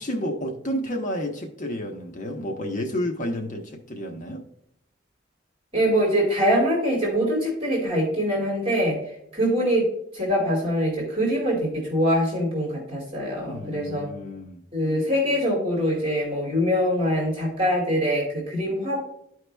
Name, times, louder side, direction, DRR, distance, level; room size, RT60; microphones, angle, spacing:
voice 1, 0.0-4.4 13.5-14.6, equal, 45° left, 3 dB, 0.9 m, -30 dB
voice 2, 5.7-9.0 9.3-9.9 10.1-14.1 14.7-19.0, equal, 30° right, -2 dB, 2.2 m, -23 dB
13.0 x 4.8 x 2.2 m, 0.78 s
head